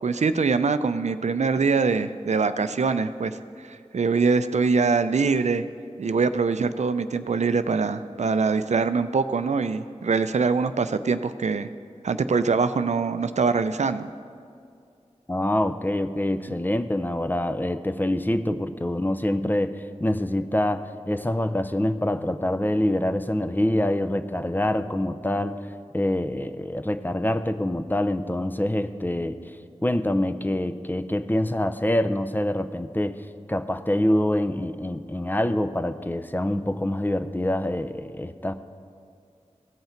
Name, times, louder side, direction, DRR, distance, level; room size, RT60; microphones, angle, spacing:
voice 1, 0.0-5.6 6.0-11.7 12.0-14.1, right 4 dB, 70° right, 11 dB, 0.4 m, -23 dB
voice 2, 15.3-25.6 25.9-29.4 29.8-38.5, left 1 dB, 15° left, 9 dB, 0.5 m, -25 dB
16.5 x 5.6 x 4.4 m, 2.4 s
cardioid pair, 40°, 12 cm